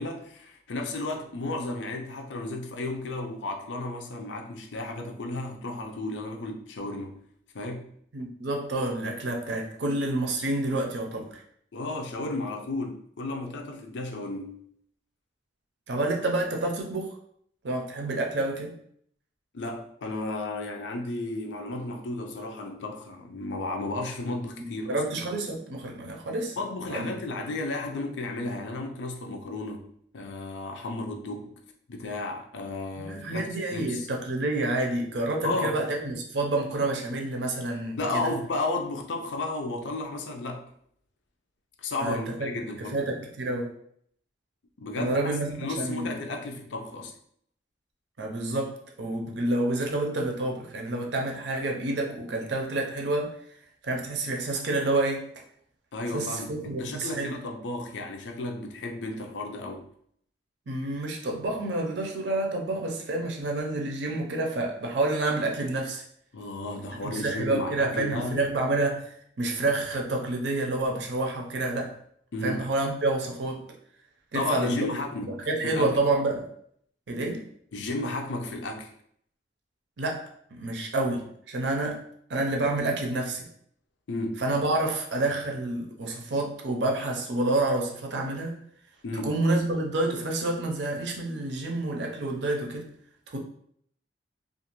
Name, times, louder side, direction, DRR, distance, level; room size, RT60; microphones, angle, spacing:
voice 1, 0.0-7.2 7.5-7.8 11.7-14.6 19.5-25.0 26.6-29.9 30.1-31.5 31.9-34.1 35.4-35.8 38.0-40.7 41.8-43.1 44.8-45.2 45.6-47.1 55.9-59.9 66.3-68.4 72.3-72.6 74.3-76.0 77.7-78.9 84.1-84.4 89.0-89.3, left 2 dB, 85° left, 2 dB, 0.5 m, -33 dB
voice 2, 8.1-11.3 15.9-17.2 17.6-18.8 24.6-26.6 26.9-27.2 33.0-38.3 42.0-42.5 42.8-43.7 45.0-46.1 48.2-53.4 53.8-55.3 56.1-57.4 60.7-66.0 67.0-71.9 72.4-73.6 74.3-74.9 75.5-76.5 77.1-77.4 80.0-82.0 82.3-83.5 84.4-88.6 89.2-92.9 93.3-93.4, right 2 dB, 75° right, 1 dB, 0.5 m, -28 dB
2.4 x 2.4 x 2.9 m, 0.67 s
head